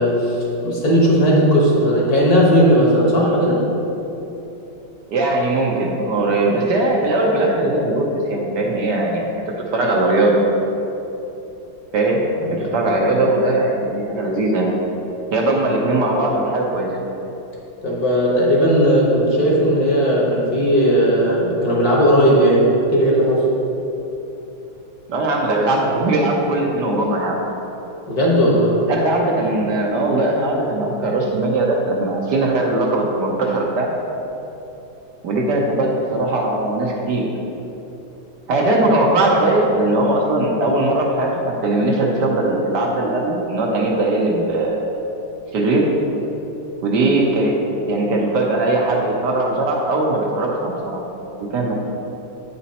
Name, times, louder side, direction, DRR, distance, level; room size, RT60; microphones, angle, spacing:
voice 1, 0.0-3.6 12.4-12.9 17.8-23.5 28.1-28.8, equal, 50° left, -4 dB, 1.8 m, -16 dB
voice 2, 5.1-9.3 9.7-10.4 11.9-12.2 12.5-14.8 15.3-17.0 25.1-27.4 28.9-33.9 35.2-37.3 38.5-44.9 45.5-45.8 46.8-47.6 47.9-51.8, right 2 dB, 65° right, -1 dB, 1.3 m, -19 dB
8.8 x 5.2 x 4.2 m, 3.0 s
omnidirectional pair, 2.1 m